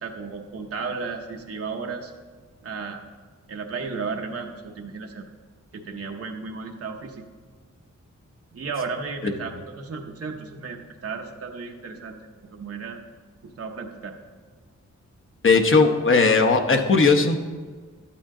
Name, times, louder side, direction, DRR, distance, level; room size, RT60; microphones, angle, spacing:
voice 1, 0.0-2.1 2.6-3.0 3.5-5.2 5.7-7.2 8.5-13.0 13.6-14.1, right 4 dB, 50° right, 2 dB, 0.8 m, -34 dB
voice 2, 15.4-17.4, left 4 dB, 45° left, 6 dB, 0.8 m, -18 dB
12.0 x 8.7 x 3.7 m, 1.5 s
wide cardioid pair, 175°, 30 cm